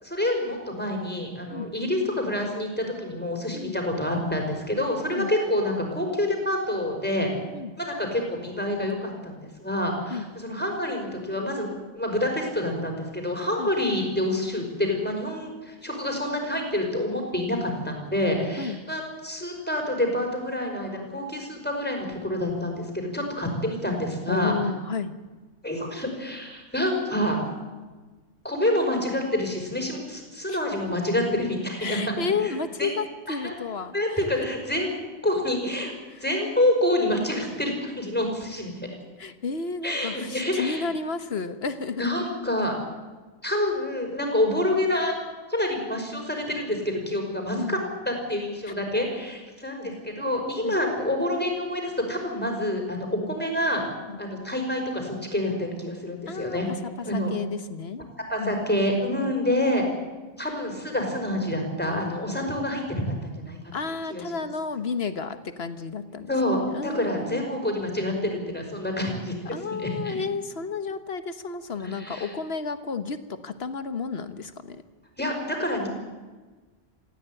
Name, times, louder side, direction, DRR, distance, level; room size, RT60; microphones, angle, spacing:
voice 1, 0.0-7.3 7.8-11.7 11.9-24.5 25.6-27.4 28.4-32.0 32.4-32.9 33.3-33.5 33.9-34.9 35.2-35.9 36.2-38.7 39.8-40.9 41.9-42.7 43.4-45.1 45.5-47.8 48.1-53.8 54.2-56.7 57.0-57.3 58.3-59.8 60.4-63.6 64.1-64.2 66.3-70.2 71.8-72.3 75.2-75.9, left 1 dB, 10° left, 2 dB, 5.4 m, -27 dB
voice 2, 24.3-25.1 30.5-30.6 31.8-34.3 36.1-36.2 39.2-42.1 47.6-47.8 48.7-48.8 50.6-50.8 54.1-54.2 56.3-58.1 58.4-58.6 59.2-59.3 63.7-67.5 69.4-73.2 73.4-74.8, left 4 dB, 55° left, 10 dB, 1.5 m, -32 dB
19.5 x 16.0 x 9.0 m, 1.3 s
omnidirectional pair, 1.2 m